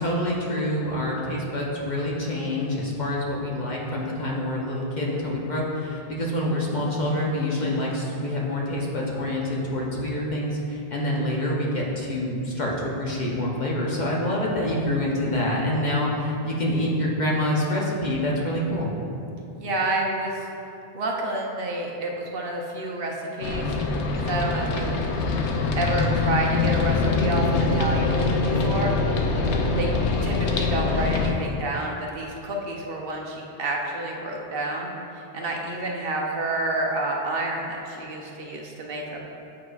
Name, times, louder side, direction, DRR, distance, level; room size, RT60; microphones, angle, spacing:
voice 1, 0.0-18.9, left 1 dB, 45° left, -3 dB, 0.8 m, -26 dB
voice 2, 19.6-20.5 20.9-23.7 24.3-25.0 25.7-28.9 29.8-29.9 30.2-39.2, right 2 dB, 60° right, -1 dB, 0.8 m, -29 dB
sound 1, 23.4-31.3, left 3 dB, 80° left, 0.9 m, -24 dB
8.6 x 4.7 x 2.3 m, 2.8 s
omnidirectional pair, 1.1 m